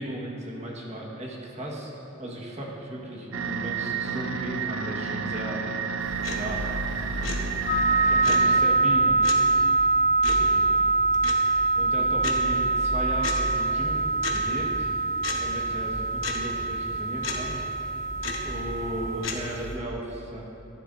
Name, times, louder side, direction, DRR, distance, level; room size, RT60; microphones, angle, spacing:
voice 1, 0.0-1.9 2.2-5.6 6.3-6.7 8.1-9.2 10.2-10.8 11.8-14.9 15.4-17.5 18.4-20.4, right 1 dB, 35° right, -2 dB, 1.4 m, -36 dB
sound 1, 3.3-8.6, right 7 dB, 75° right, 0.5 m, -31 dB
sound 2, 6.0-19.8, left 2 dB, 75° left, 1.0 m, -36 dB
sound 3, 7.7-19.2, right 3 dB, 50° left, 0.9 m, -24 dB
13.0 x 11.5 x 2.6 m, 2.8 s
head